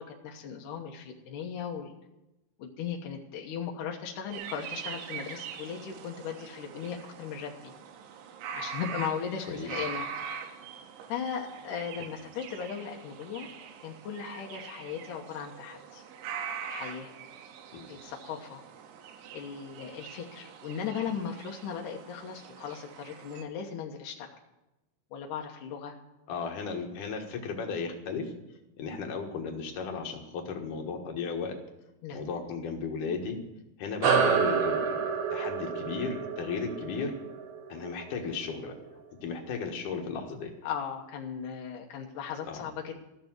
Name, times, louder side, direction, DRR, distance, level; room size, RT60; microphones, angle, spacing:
voice 1, 0.0-1.9 2.6-7.7 8.5-10.1 11.1-13.5 13.8-16.0 16.7-17.1 17.9-18.6 19.3-24.3 25.1-25.9 32.0-32.2 40.6-43.0, left 7 dB, 75° left, 1 dB, 1.9 m, -37 dB
sound 1, 4.3-23.4, right 7 dB, 85° right, 3.5 m, -43 dB
voice 2, 26.3-28.3 28.8-31.6 32.1-33.4 33.8-37.1 37.7-38.7 39.2-40.5 42.5-42.7, left 5 dB, 60° left, 2 dB, 2.5 m, -35 dB
sound 2, 34.0-38.9, right 6 dB, 60° right, 2.2 m, -29 dB
14.5 x 6.8 x 9.3 m, 0.95 s
omnidirectional pair, 5.3 m